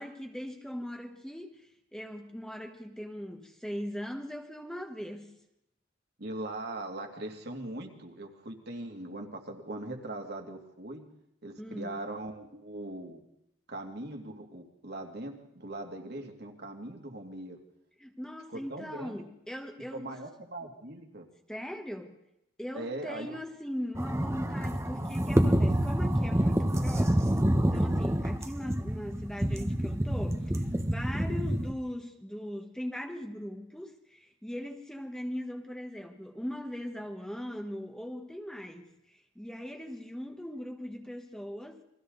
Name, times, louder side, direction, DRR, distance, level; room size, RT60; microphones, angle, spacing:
voice 1, 0.0-5.3 11.6-12.0 18.0-20.1 21.5-22.1 22.6-41.8, equal, 5° left, 4 dB, 1.4 m, -40 dB
voice 2, 6.2-11.0 11.4-13.2 13.7-17.6 18.5-19.2 19.9-21.2 22.7-23.4 28.6-28.7 31.3-31.4, right 1 dB, 55° right, 2 dB, 2.7 m, -40 dB
sound 1, 23.9-31.7, right 1 dB, 15° right, 1.2 m, -27 dB
29.0 x 23.0 x 4.1 m, 0.84 s
head